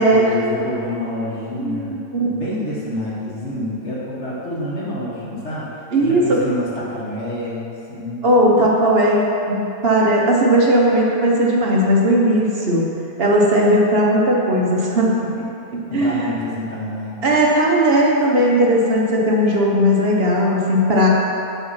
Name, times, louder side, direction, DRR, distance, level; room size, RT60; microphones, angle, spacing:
voice 1, 0.0-2.0 2.3-5.7 6.0-8.3 15.9-17.2, left 1 dB, 50° left, -7 dB, 1.6 m, -27 dB
voice 2, 1.6-2.3 5.9-6.2 8.2-12.8 13.2-15.3 15.7-16.3 17.2-21.1, equal, 45° right, -3 dB, 1.1 m, -17 dB
5.9 x 5.8 x 5.6 m, 2.8 s
omnidirectional pair, 1.6 m